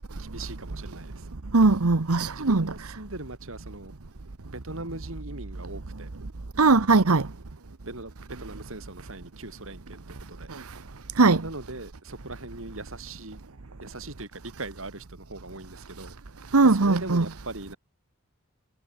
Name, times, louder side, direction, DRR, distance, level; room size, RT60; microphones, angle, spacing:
voice 1, 0.2-1.3 2.3-3.9 4.5-6.1 7.0-7.2 7.9-10.5 11.4-13.4 13.8-16.2 16.6-17.8, right 2 dB, 65° right, 3.6 m, -40 dB
voice 2, 1.5-2.7 6.6-7.3 11.2-11.4 16.5-17.2, right 3 dB, 80° right, 1.1 m, -19 dB
head